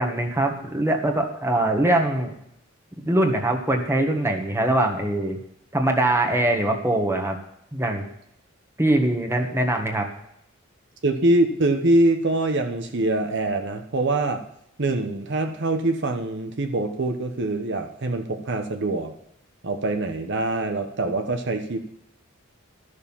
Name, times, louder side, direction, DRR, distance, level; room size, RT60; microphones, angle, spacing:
voice 1, 0.0-2.3 3.0-5.4 5.7-7.4 7.7-8.0 8.8-10.1, right 1 dB, 15° right, 2 dB, 1.6 m, -22 dB
voice 2, 11.0-14.4 14.8-19.1 19.6-21.8, right 2 dB, 60° right, 5 dB, 1.0 m, -24 dB
13.0 x 6.6 x 7.2 m, 0.74 s
head